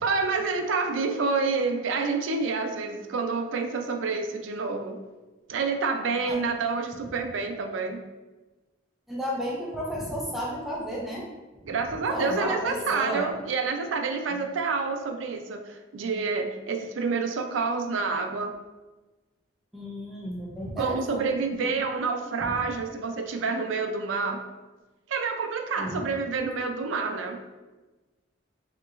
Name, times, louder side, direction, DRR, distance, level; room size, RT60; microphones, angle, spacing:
voice 1, 0.0-5.0 5.5-8.0 11.7-18.5 20.8-24.5 25.1-27.4, right 4 dB, 80° right, 5 dB, 0.4 m, -28 dB
voice 2, 9.1-11.3 12.1-13.3 14.3-14.4 19.7-21.3 21.6-21.7 22.4-22.5 25.8-26.0, equal, ahead, -5 dB, 0.5 m, -33 dB
3.7 x 2.9 x 2.4 m, 1.2 s
head